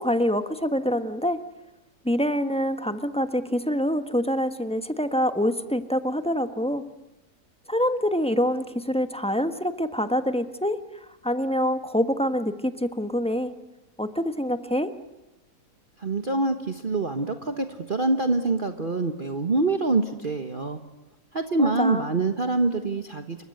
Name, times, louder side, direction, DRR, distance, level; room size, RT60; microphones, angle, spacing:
voice 1, 0.0-1.4 2.0-6.8 7.7-10.8 11.2-13.5 14.0-14.9 21.6-22.0, equal, 5° left, 9 dB, 1.3 m, -25 dB
voice 2, 16.0-20.8 21.3-23.4, right 3 dB, 35° right, 6 dB, 1.5 m, -25 dB
29.5 x 23.5 x 8.0 m, 0.94 s
omnidirectional pair, 1.6 m